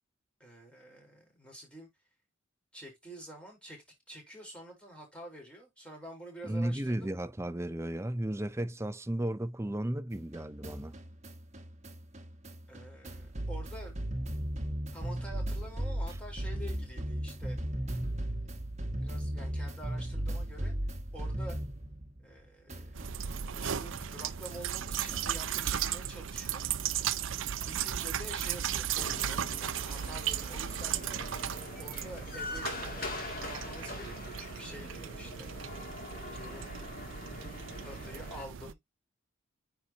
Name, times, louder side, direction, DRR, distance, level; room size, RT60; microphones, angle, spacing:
voice 1, 0.4-1.9 2.7-7.1 12.7-14.0 14.9-17.6 19.0-20.7 21.1-21.6 22.2-22.9 23.5-26.7 27.6-31.2 31.8-35.5 36.3-36.7 37.3-38.8, right 1 dB, 5° left, 4.1 m, -48 dB
voice 2, 6.4-11.0, right 1 dB, 10° right, 0.5 m, -34 dB
sound 1, 10.1-22.4 22.7-25.5, right 1 dB, 30° right, 1.4 m, -37 dB
sound 2, 22.9-38.7, right 9 dB, 65° right, 0.5 m, -36 dB
sound 3, 29.0-38.5, left 2 dB, 40° left, 2.5 m, -43 dB
9.5 x 4.2 x 2.8 m
head